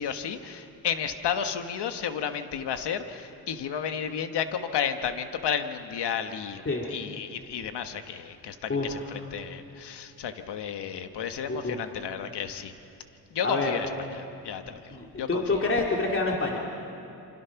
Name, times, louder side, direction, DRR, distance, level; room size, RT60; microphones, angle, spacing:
voice 1, 0.0-6.6 6.9-12.7 13.3-14.8 15.2-15.4, left 8 dB, 75° left, 8 dB, 1.5 m, -32 dB
voice 2, 8.7-9.1 11.5-11.8 13.4-13.8 14.6-16.6, left 3 dB, 30° left, -1 dB, 2.6 m, -28 dB
28.0 x 25.5 x 6.0 m, 2.8 s
cardioid pair, 80°, 41 cm